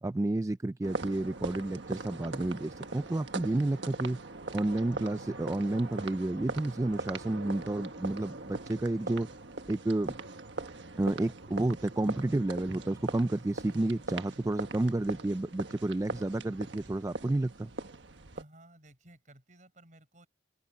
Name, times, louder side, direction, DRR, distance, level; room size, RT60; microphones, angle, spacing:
voice 1, 0.0-4.2 4.5-9.3 9.7-10.1 11.0-17.7, right 2 dB, 15° right, 0.3 m, -31 dB
sound 1, 0.8-18.4, right 3 dB, 70° right, 1.4 m, -41 dB
voice 2, 18.3-20.3, right 1 dB, 40° right, 4.5 m, -56 dB
head